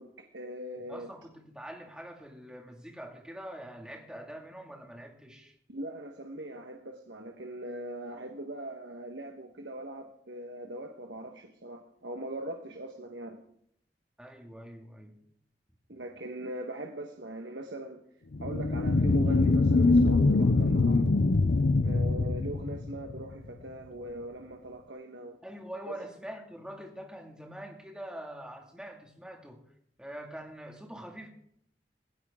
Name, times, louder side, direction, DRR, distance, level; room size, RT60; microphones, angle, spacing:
voice 1, 0.0-1.1 5.7-13.4 15.9-18.1 18.4-21.1 21.8-25.4 25.9-26.0, right 1 dB, 90° right, 4 dB, 1.5 m, -41 dB
voice 2, 0.9-5.5 14.2-15.2 25.4-29.6 30.0-31.3, right 1 dB, 5° right, 1 dB, 2.2 m, -44 dB
sound 1, 18.3-23.3, left 3 dB, 70° left, 0.6 m, -24 dB
16.5 x 16.0 x 3.8 m, 0.71 s
head